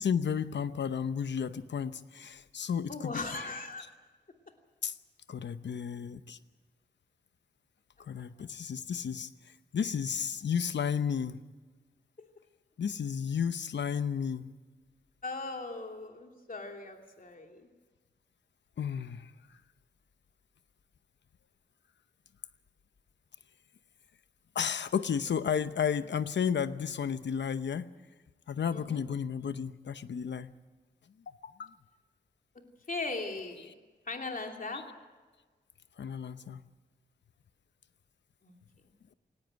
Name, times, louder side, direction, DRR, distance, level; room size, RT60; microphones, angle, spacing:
voice 1, 0.0-3.7 4.8-4.9 5.3-6.4 8.0-9.3 9.7-11.4 12.8-14.5 18.8-19.3 24.5-27.9 28.5-30.5 31.4-31.8 33.6-33.7 34.7-34.8 36.0-36.6, left 7 dB, 85° left, 13 dB, 0.9 m, -33 dB
voice 2, 2.9-3.8 12.2-12.3 15.2-17.7 28.7-29.0 32.9-33.7 34.1-34.8 38.4-38.5, left 3 dB, 50° left, 3 dB, 2.9 m, -38 dB
18.5 x 17.5 x 9.1 m, 1.3 s
cardioid pair, 70°, 18 cm